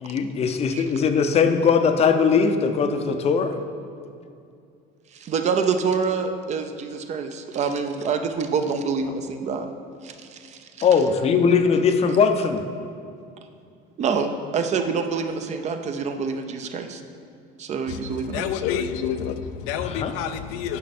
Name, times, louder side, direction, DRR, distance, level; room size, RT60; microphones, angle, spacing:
voice 1, 0.0-3.5 10.8-12.6 19.8-20.1, left 6 dB, 35° left, 7 dB, 0.6 m, -20 dB
voice 2, 5.1-9.7 10.0-10.9 14.0-17.0 17.6-18.5, right 5 dB, 40° right, 7 dB, 0.6 m, -26 dB
voice 3, 18.3-20.8, left 8 dB, 85° left, 10 dB, 0.5 m, -28 dB
9.4 x 5.6 x 4.2 m, 2.4 s
cardioid pair, 125°, 19 cm